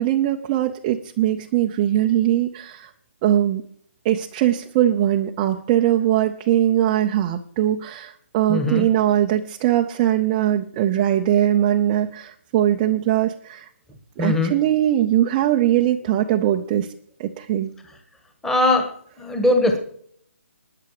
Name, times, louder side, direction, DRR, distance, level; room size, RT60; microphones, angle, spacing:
voice 1, 0.0-2.9 3.2-3.6 4.0-13.7 14.2-16.9 17.2-17.7, right 12 dB, 15° right, 2 dB, 0.5 m, -21 dB
voice 2, 8.5-8.9 14.2-14.5 18.4-18.9 19.2-19.8, left 2 dB, 5° left, 4 dB, 1.4 m, -20 dB
20.0 x 6.8 x 4.8 m, 0.62 s
hypercardioid pair, 165°, 8 cm